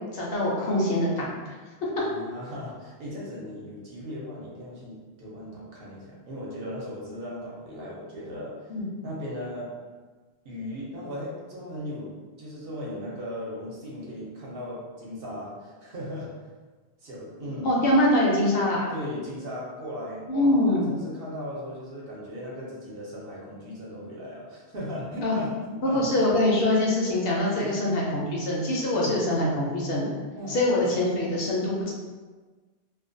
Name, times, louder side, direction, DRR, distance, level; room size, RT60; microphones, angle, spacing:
voice 1, 0.1-1.5 1.8-2.0 8.7-8.8 17.6-18.8 20.3-20.9 25.2-25.4 25.8-30.1 30.5-31.9, left 1 dB, 65° left, -3 dB, 0.7 m, -24 dB
voice 2, 2.0-8.7 9.0-9.8 10.4-16.5 17.0-17.7 18.9-26.3 27.5-27.8 28.9-29.2 30.4-30.9, equal, 60° right, -5 dB, 0.8 m, -37 dB
2.4 x 2.1 x 2.5 m, 1.3 s
omnidirectional pair, 1.1 m